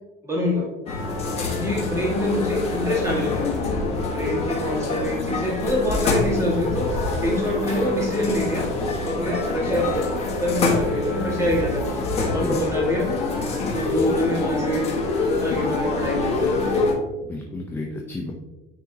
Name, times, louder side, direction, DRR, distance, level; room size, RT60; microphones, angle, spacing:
voice 1, 0.2-0.7 1.5-3.5 4.0-6.9 7.2-8.7 9.0-10.1 10.4-12.0 12.3-13.1 13.7-14.9 15.4-16.6, equal, 15° right, -3 dB, 1.8 m, -25 dB
sound 1, 0.9-16.9, left 3 dB, 30° left, 1.4 m, -25 dB
voice 2, 12.2-12.6 13.9-14.2 17.2-18.3, left 3 dB, 10° left, -1 dB, 0.6 m, -31 dB
9.7 x 3.7 x 2.9 m, 1.1 s
cardioid pair, 155°, 20 cm